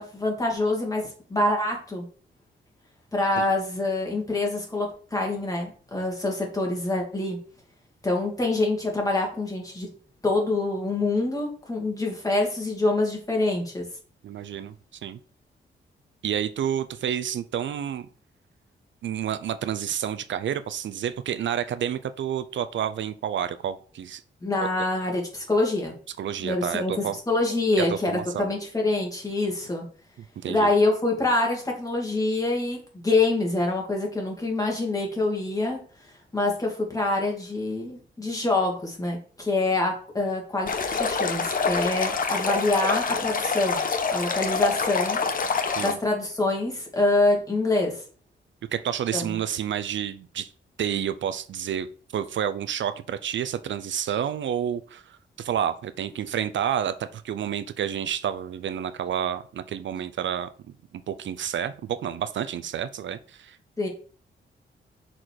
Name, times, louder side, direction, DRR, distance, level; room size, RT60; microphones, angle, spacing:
voice 1, 0.0-2.0 3.1-7.4 8.0-9.9 10.2-13.8 24.4-25.9 26.4-29.8 30.5-35.8 36.3-43.8 44.1-45.2 45.8-48.0 49.1-49.2 63.8-63.9, left 2 dB, 15° left, 2.5 m, -25 dB
voice 2, 14.2-14.7 15.0-15.2 16.2-18.1 19.0-24.2 24.6-24.7 26.1-27.2 27.8-28.5 30.4-30.7 45.8-46.0 48.7-50.5 50.8-60.5 60.9-63.6, right 9 dB, 70° right, 0.5 m, -29 dB
Stream, 40.7-45.9, left 5 dB, 45° left, 1.0 m, -26 dB
6.4 x 4.4 x 4.6 m
wide cardioid pair, 115°, 20 cm